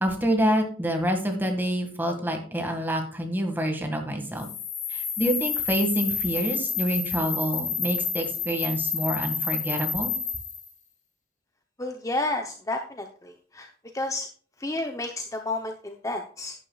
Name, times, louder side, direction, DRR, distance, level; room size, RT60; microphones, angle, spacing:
voice 1, 0.0-4.5 4.9-10.1, equal, 10° right, 4 dB, 1.8 m, -27 dB
sound 1, 4.4-10.7, left 6 dB, 45° left, 1.6 m, -29 dB
voice 2, 11.8-13.7 13.9-14.3 14.6-16.5, left 2 dB, 20° left, 4 dB, 0.7 m, -31 dB
11.0 x 9.9 x 2.3 m, 0.43 s
head